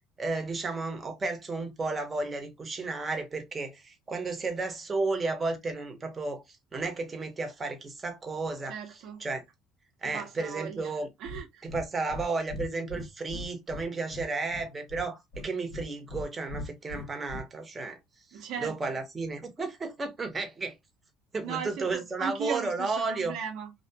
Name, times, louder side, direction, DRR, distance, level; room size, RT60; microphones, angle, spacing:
voice 1, 0.2-6.4 6.7-8.7 9.2-9.4 10.0-11.1 11.6-18.0 18.3-20.8 21.3-23.4, right 3 dB, 25° right, 0.9 m, -33 dB
voice 2, 8.7-9.3 10.1-10.9 11.2-11.7 18.3-19.0 21.4-23.7, right 6 dB, 65° right, 0.8 m, -37 dB
Breathing, 11.2-11.4 11.7-11.8 12.1-12.2 12.5-13.9 14.1-15.0 15.3-16.2 16.5-17.4, left 1 dB, 70° left, 1.0 m, -39 dB
2.8 x 2.4 x 2.2 m
supercardioid pair, 95°, 0 cm